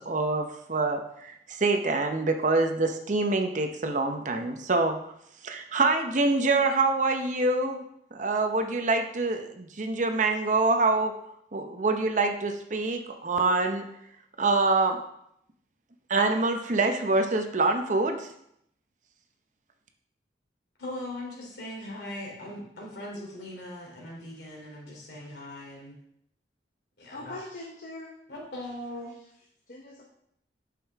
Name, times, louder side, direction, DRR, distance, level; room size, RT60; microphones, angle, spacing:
voice 1, 0.0-5.0 5.4-7.8 8.1-11.1 11.5-13.9 14.4-15.0 16.1-18.3, right 3 dB, 45° right, 5 dB, 0.7 m, -25 dB
voice 2, 20.8-25.9 27.0-27.4 28.3-29.2, left 1 dB, 65° left, -2 dB, 2.9 m, -40 dB
voice 3, 27.0-28.2 29.7-30.0, left 2 dB, 50° left, -1 dB, 1.0 m, -42 dB
8.3 x 6.4 x 3.5 m, 0.74 s
head